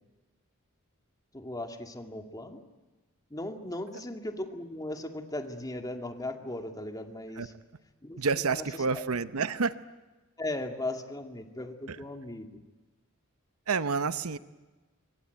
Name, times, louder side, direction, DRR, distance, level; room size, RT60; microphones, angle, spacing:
voice 1, 1.3-2.6 3.3-7.5 8.0-8.2 8.6-8.7 8.9-9.0 10.4-12.6, left 1 dB, 15° left, 5 dB, 2.2 m, -37 dB
voice 2, 8.2-9.7 11.9-12.0 13.7-14.4, right 4 dB, 85° right, 13 dB, 0.9 m, -29 dB
25.0 x 24.0 x 9.3 m, 1.2 s
head